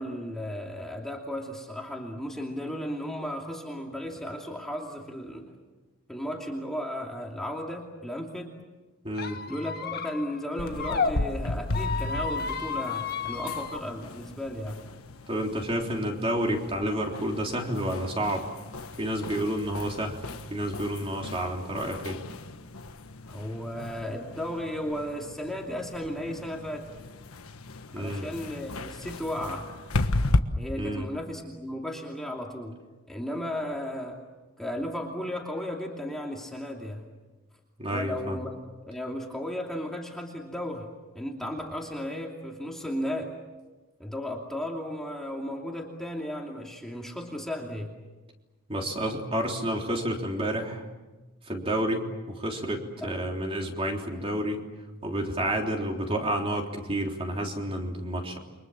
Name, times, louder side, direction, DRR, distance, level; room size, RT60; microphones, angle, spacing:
voice 1, 0.0-5.5 6.1-8.6 9.5-14.8 23.3-26.9 28.0-29.7 30.6-32.8 33.1-34.2 34.6-37.1 37.9-40.9 41.1-43.3 44.0-47.9 53.0-53.1, left 1 dB, ahead, -1 dB, 2.7 m, -35 dB
voice 2, 9.0-9.4 15.3-18.5 19.0-20.2 20.5-22.2 27.9-28.3 30.8-31.1 37.8-38.4 48.7-50.8 51.5-54.6 55.0-58.4, right 1 dB, 25° right, 1 dB, 3.6 m, -30 dB
Squeak, 9.1-11.1 11.7-13.8, left 5 dB, 45° left, 1.7 m, -32 dB
sound 1, 10.6-30.4, left 2 dB, 85° left, 1.4 m, -35 dB
30.0 x 24.0 x 7.5 m, 1.2 s
head